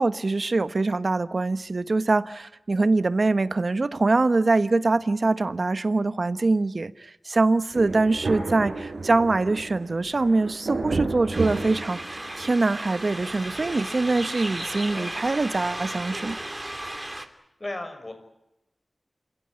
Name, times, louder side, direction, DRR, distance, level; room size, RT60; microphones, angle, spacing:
voice 1, 0.0-16.4, right 3 dB, 55° right, 13 dB, 1.1 m, -24 dB
Thunder, 7.7-12.5, right 3 dB, 75° right, 4.9 m, -32 dB
sound 1, 11.3-17.3, right 1 dB, 20° right, 2.8 m, -35 dB
voice 2, 14.7-15.1 17.6-18.1, left 2 dB, 35° left, 7 dB, 6.6 m, -35 dB
28.5 x 16.5 x 10.0 m, 0.89 s
wide cardioid pair, 75°, 0 cm